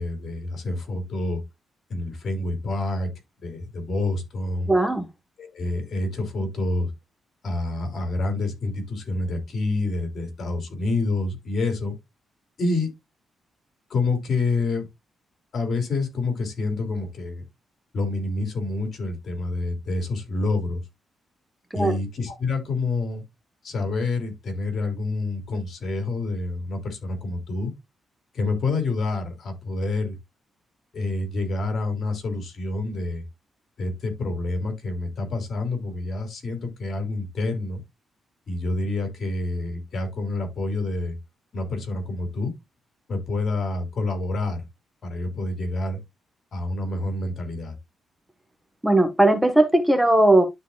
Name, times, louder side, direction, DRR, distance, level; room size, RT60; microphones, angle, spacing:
voice 1, 0.0-1.4 1.9-3.1 3.4-4.7 5.4-6.9 7.4-11.9 12.6-12.9 13.9-14.9 15.5-17.4 17.9-20.8 21.7-23.2 23.6-27.7 28.3-30.2 30.9-33.2 33.8-37.8 38.5-41.2 41.5-42.5 43.1-44.7 45.0-46.0 46.5-47.7, left 2 dB, 55° left, 2.9 m, -27 dB
voice 2, 4.7-5.1 21.7-22.0 48.8-50.4, right 1 dB, 5° right, 1.3 m, -18 dB
12.0 x 4.0 x 2.4 m
cardioid pair, 100°, 0 cm